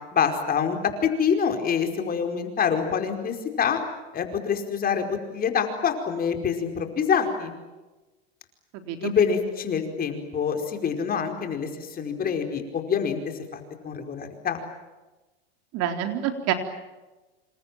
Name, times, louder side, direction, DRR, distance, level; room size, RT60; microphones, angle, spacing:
voice 1, 0.1-3.8 4.1-7.5 9.0-13.2 13.5-14.6, left 7 dB, 30° left, 5 dB, 4.9 m, -26 dB
voice 2, 8.7-9.1 15.7-16.5, right 11 dB, 50° right, 6 dB, 3.9 m, -27 dB
28.0 x 27.0 x 7.6 m, 1.1 s
supercardioid pair, 115°, 31 cm